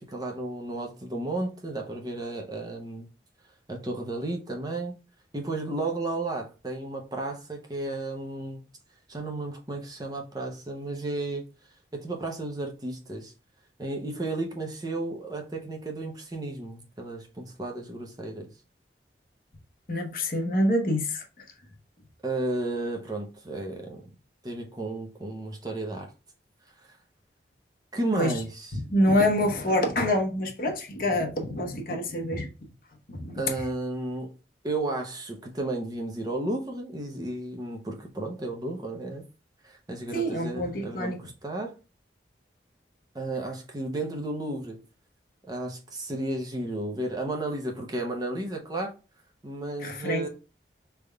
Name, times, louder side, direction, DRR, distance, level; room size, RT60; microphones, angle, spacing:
voice 1, 0.0-3.1 3.7-4.9 5.3-8.6 9.1-11.4 11.9-13.3 13.8-18.5 22.2-24.0 24.4-26.1 26.8-26.9 27.9-28.8 33.3-34.3 34.6-39.2 39.6-41.8 43.1-44.8 45.5-48.9 49.4-50.3, right 2 dB, 20° right, 0.6 m, -33 dB
voice 2, 19.9-21.2 28.2-28.3 28.9-32.5 33.1-33.3 40.1-41.2 49.8-50.2, left 1 dB, 50° left, 0.9 m, -26 dB
5.1 x 3.4 x 2.3 m
head